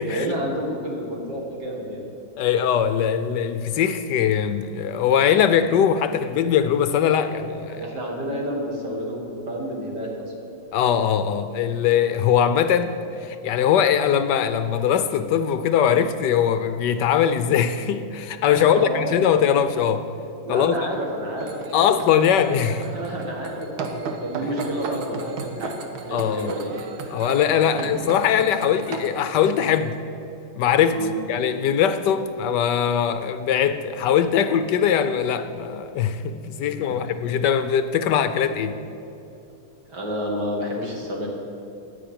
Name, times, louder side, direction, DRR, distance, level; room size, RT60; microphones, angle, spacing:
voice 1, 0.1-2.0 7.7-10.3 18.5-19.5 20.4-21.6 22.8-26.7 27.6-28.0 30.9-31.2 37.0-37.1 39.9-41.3, right 1 dB, 55° right, -2 dB, 2.5 m, -30 dB
voice 2, 2.4-7.8 10.7-20.1 20.5-20.8 21.7-22.9 26.1-26.5 27.1-30.0 30.6-38.8, left 8 dB, 75° left, 11 dB, 1.0 m, -21 dB
sound 1, 21.4-29.8, right 4 dB, 90° right, 1.9 m, -35 dB
10.0 x 9.4 x 8.8 m, 2.9 s
omnidirectional pair, 2.2 m